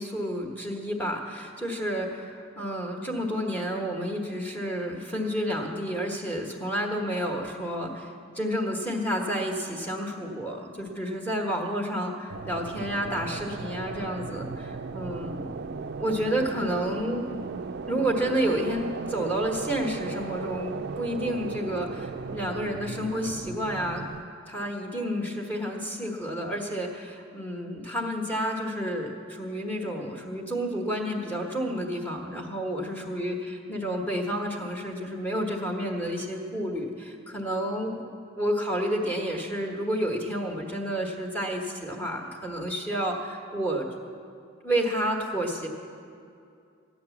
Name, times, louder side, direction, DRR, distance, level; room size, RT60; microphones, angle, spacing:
voice 1, 0.0-15.6 16.0-17.2 17.9-24.0 24.5-38.0 38.4-43.9 44.6-45.7, equal, 10° left, -1 dB, 1.3 m, -30 dB
sound 1, 12.3-24.2, right 4 dB, 55° right, 0.4 m, -36 dB
14.5 x 9.2 x 7.1 m, 2.5 s
head